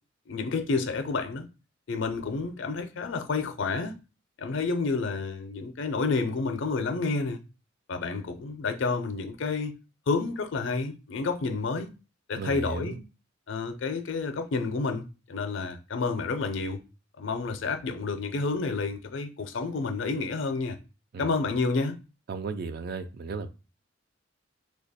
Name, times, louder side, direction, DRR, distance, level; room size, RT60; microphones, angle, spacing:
voice 1, 0.3-1.5 1.9-4.0 4.4-7.4 7.9-9.7 10.1-11.9 12.3-13.0 13.5-16.8 17.2-20.8 21.2-22.0, left 4 dB, 65° left, 0.5 m, -30 dB
voice 2, 12.4-13.0 21.1-21.3 22.3-23.5, right 4 dB, 50° right, 0.4 m, -34 dB
2.8 x 2.2 x 4.1 m
head